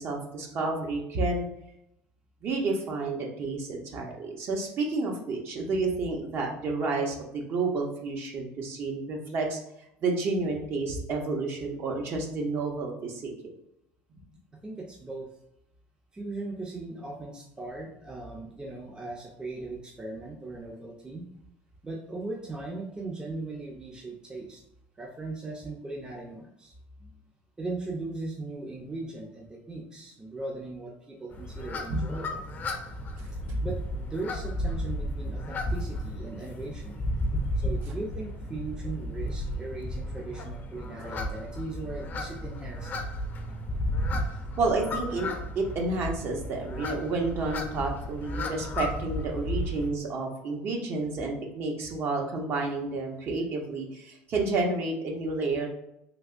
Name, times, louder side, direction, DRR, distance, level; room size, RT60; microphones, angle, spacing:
voice 1, 0.0-1.5 2.4-9.6 10.0-13.3 31.9-32.1 33.4-33.5 44.6-55.7, right 3 dB, 50° right, 0 dB, 0.8 m, -30 dB
voice 2, 14.6-15.3 16.1-21.3 21.8-24.6 25.0-27.2 27.6-32.4 33.3-37.0 37.6-43.0, right 2 dB, 15° right, -1 dB, 0.6 m, -38 dB
sound 1, 31.3-49.9, left 1 dB, 35° left, 0.6 m, -33 dB
3.4 x 2.8 x 2.5 m, 0.81 s
supercardioid pair, 95°, 5 cm